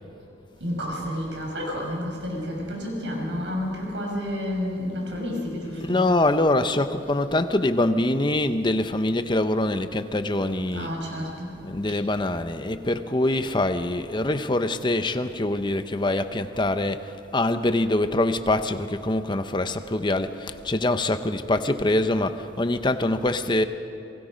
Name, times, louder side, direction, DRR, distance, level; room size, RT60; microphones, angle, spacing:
voice 1, 0.6-6.1 10.7-11.5, left 1 dB, 80° right, 0 dB, 5.7 m, -30 dB
voice 2, 5.8-10.9 11.6-23.6, left 2 dB, 25° left, 9 dB, 0.8 m, -24 dB
28.0 x 21.5 x 5.2 m, 2.6 s
head